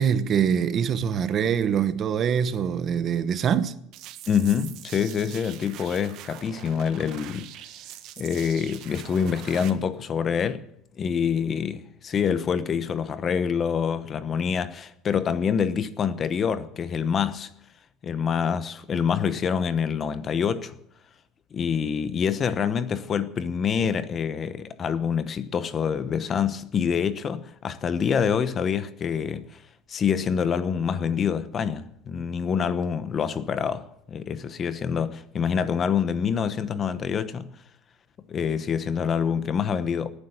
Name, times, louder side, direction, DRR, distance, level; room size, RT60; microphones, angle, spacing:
voice 1, 0.0-3.8, right 8 dB, 35° right, 1.0 m, -24 dB
sound 1, 3.9-9.7, right 12 dB, 55° right, 1.6 m, -43 dB
voice 2, 4.3-7.5 8.2-10.6 11.0-17.5 18.0-20.8 21.5-29.6 29.9-37.5 38.3-40.1, left 7 dB, 30° left, 1.0 m, -26 dB
18.0 x 9.9 x 7.9 m
cardioid pair, 145°, 0 cm